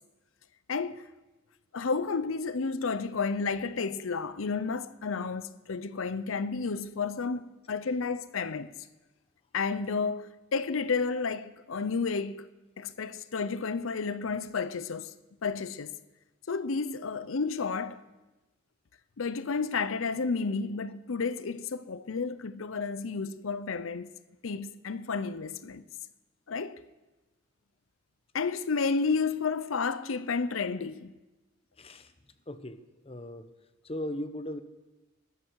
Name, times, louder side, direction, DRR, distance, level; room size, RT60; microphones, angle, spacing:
voice 1, 0.7-1.0 1.7-8.7 9.5-12.5 12.8-15.1 15.4-15.9 16.5-18.0 19.2-24.1 24.4-25.8 26.5-26.8 28.3-31.1, left 4 dB, 85° left, 0.7 m, -31 dB
voice 2, 31.8-32.1 32.5-32.8 33.0-33.5 33.8-34.6, left 1 dB, 30° left, 0.9 m, -37 dB
21.0 x 13.0 x 4.7 m
head